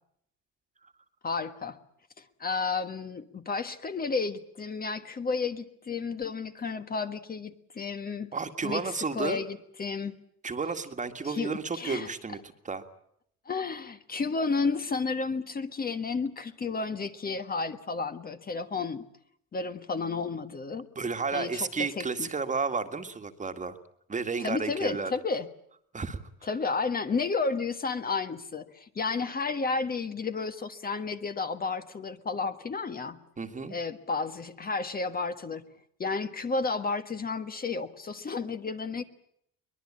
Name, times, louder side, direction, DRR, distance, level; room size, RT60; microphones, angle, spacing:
voice 1, 1.2-1.8 2.2-8.3 8.6-10.1 11.2-12.1 13.4-19.0 19.5-20.9 21.3-22.3 24.4-25.5 26.4-33.2 33.7-35.6 36.0-39.0, left 4 dB, 25° left, 9 dB, 1.5 m, -32 dB
voice 2, 8.3-9.4 10.4-12.4 12.7-12.8 21.0-23.8 24.1-25.1 25.9-26.2 33.4-33.8, right 4 dB, 20° right, 8 dB, 1.9 m, -32 dB
23.5 x 21.0 x 8.7 m, 0.71 s
cardioid pair, 125°, 33 cm